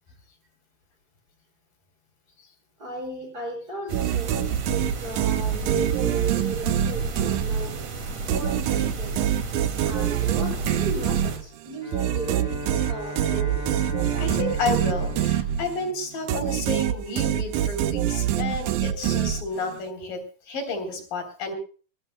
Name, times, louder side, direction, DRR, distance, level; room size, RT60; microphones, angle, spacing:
voice 1, 2.8-4.3 4.6-7.7 8.3-9.3 9.8-12.4 12.9-13.6 18.9-19.1 20.0-20.1, right 3 dB, 25° right, 3 dB, 6.3 m, -35 dB
sound 1, 3.9-11.4, right 3 dB, 50° right, 3.4 m, -34 dB
sound 2, 3.9-7.9 8.3-15.9 16.3-19.8, right 11 dB, 75° right, 2.3 m, -25 dB
Bowed string instrument, 11.8-16.9, left 2 dB, 15° left, 4.0 m, -38 dB
voice 2, 14.2-21.5, left 3 dB, 85° left, 5 dB, 5.3 m, -31 dB
22.0 x 19.5 x 2.2 m, 0.39 s
omnidirectional pair, 3.9 m